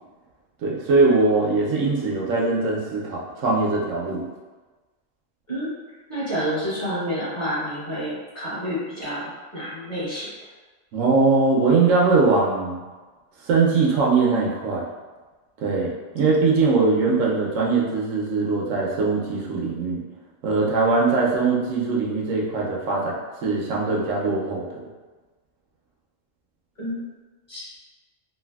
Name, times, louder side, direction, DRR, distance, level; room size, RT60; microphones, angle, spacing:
voice 1, 0.6-4.2 10.9-12.8 13.4-14.9 15.6-20.0 20.4-24.9, right 3 dB, 85° right, -3 dB, 1.0 m, -21 dB
voice 2, 6.1-10.3 26.8-27.1 27.5-27.8, equal, 25° left, -11 dB, 1.1 m, -29 dB
3.2 x 2.4 x 2.3 m, 1.3 s
omnidirectional pair, 1.3 m